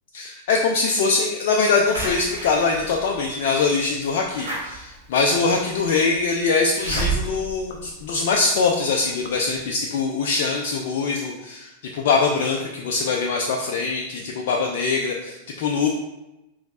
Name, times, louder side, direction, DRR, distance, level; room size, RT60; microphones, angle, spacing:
voice 1, 0.1-15.9, left 4 dB, 55° left, 0 dB, 0.4 m, -23 dB
Slam / Alarm, 1.9-8.7 9.2-9.3 9.5-9.6, right 3 dB, 70° right, 1.0 m, -32 dB
5.0 x 3.1 x 2.5 m, 0.94 s
figure-of-eight pair, 90°, 0 cm